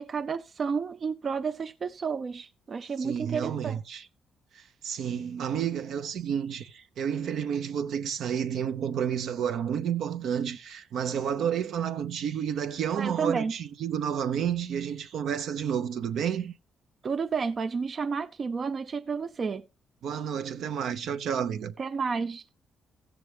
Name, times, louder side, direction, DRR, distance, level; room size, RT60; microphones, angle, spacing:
voice 1, 0.0-3.8 12.9-13.5 17.0-19.6 21.8-22.5, right 5 dB, 45° right, 0.5 m, -31 dB
voice 2, 3.0-4.0 4.5-16.5 20.0-21.7, right 8 dB, 70° right, 0.8 m, -30 dB
16.0 x 7.1 x 3.3 m
cardioid pair, 90°, 0 cm